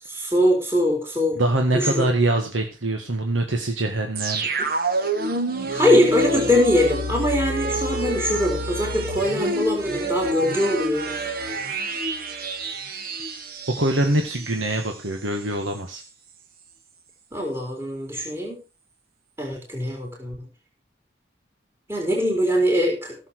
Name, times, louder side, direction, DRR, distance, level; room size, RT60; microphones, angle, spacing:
voice 1, 0.1-1.4 1.7-2.1 4.6-4.7 5.7-11.1 17.3-18.6 19.4-20.5 21.9-23.2, left 1 dB, 15° right, 0 dB, 3.8 m, -22 dB
voice 2, 1.3-4.4 13.7-16.0, right 1 dB, 80° right, 4 dB, 1.7 m, -24 dB
sound 1, 4.2-15.0 15.3-15.4, right 1 dB, 50° right, 1.6 m, -28 dB
15.5 x 7.3 x 4.7 m, 0.29 s
head